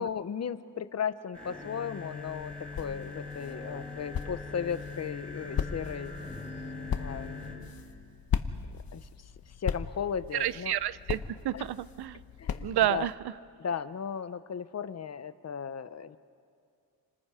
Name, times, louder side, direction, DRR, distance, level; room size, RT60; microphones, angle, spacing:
voice 1, 0.0-6.1 7.0-7.5 8.7-9.1 9.6-10.7 11.5-11.7 12.4-13.1 13.6-16.2, left 7 dB, 40° left, 13 dB, 0.7 m, -36 dB
sound 1, 1.3-7.5, left 3 dB, 5° left, 6.7 m, -41 dB
sound 2, 2.2-13.1, left 8 dB, 65° left, 1.0 m, -38 dB
voice 2, 10.3-12.2 12.6-13.1, right 12 dB, 80° right, 17 dB, 0.6 m, -30 dB
30.0 x 26.0 x 4.9 m, 2.3 s
wide cardioid pair, 155°, 39 cm